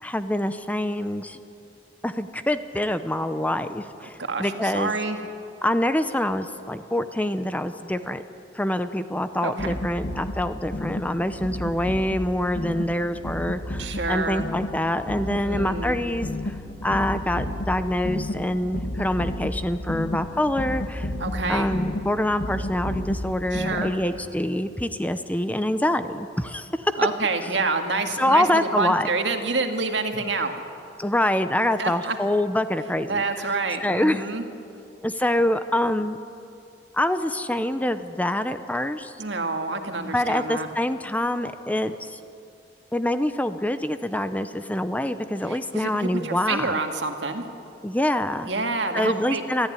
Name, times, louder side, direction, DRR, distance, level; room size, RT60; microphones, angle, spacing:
voice 1, 0.0-1.4 2.0-4.9 5.6-8.2 8.5-21.1 21.5-26.9 28.2-29.1 31.0-33.3 33.8-34.2 35.0-36.2 36.9-39.1 40.0-42.2 42.9-46.8 47.8-48.5 48.9-49.7, left 1 dB, 10° left, 10 dB, 0.8 m, -25 dB
voice 2, 4.0-5.2 9.4-9.8 13.8-14.5 15.4-16.0 21.2-21.7 23.5-23.9 26.9-30.5 31.8-32.2 33.1-34.4 39.2-40.7 45.5-47.5 48.4-49.4, right 3 dB, 75° right, 5 dB, 2.0 m, -28 dB
sound 1, 9.6-24.2, left 1 dB, 50° left, 1.6 m, -32 dB
25.0 x 15.0 x 9.9 m, 2.6 s
head